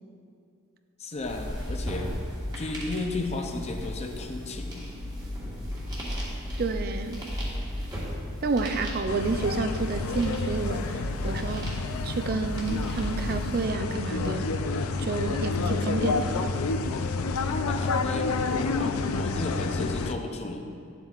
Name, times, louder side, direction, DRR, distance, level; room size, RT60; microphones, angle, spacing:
voice 1, 1.0-2.2 2.5-4.9 17.7-20.7, left 2 dB, 30° left, 3 dB, 0.5 m, -34 dB
sound 1, 1.2-13.6, left 1 dB, 20° right, 1.4 m, -35 dB
voice 2, 6.6-7.2 8.4-11.8 12.0-14.5 15.0-16.3, right 4 dB, 45° right, 7 dB, 0.4 m, -30 dB
sound 2, 9.1-20.1, left 3 dB, 85° left, 0.4 m, -29 dB
9.9 x 7.5 x 2.4 m, 2.4 s
head